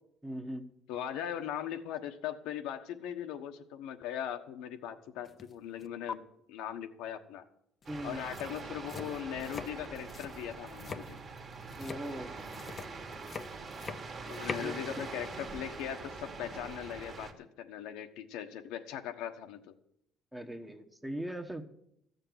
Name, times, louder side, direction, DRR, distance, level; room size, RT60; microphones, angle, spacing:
voice 1, 0.2-0.7 7.9-8.2 11.8-12.4 14.4-14.9 20.3-21.7, right 1 dB, 5° right, 4 dB, 1.2 m, -40 dB
voice 2, 0.9-6.2 6.5-7.4 8.0-11.2 14.3-19.7, left 10 dB, 80° left, 6 dB, 1.2 m, -39 dB
sound 1, 5.2-5.5 5.8-6.1 7.8-7.9 8.2-14.7, left 5 dB, 30° left, 0.7 m, -43 dB
sound 2, 7.8-17.3, right 4 dB, 35° right, 1.7 m, -44 dB
14.5 x 6.7 x 9.5 m, 0.74 s
cardioid pair, 140°, 0 cm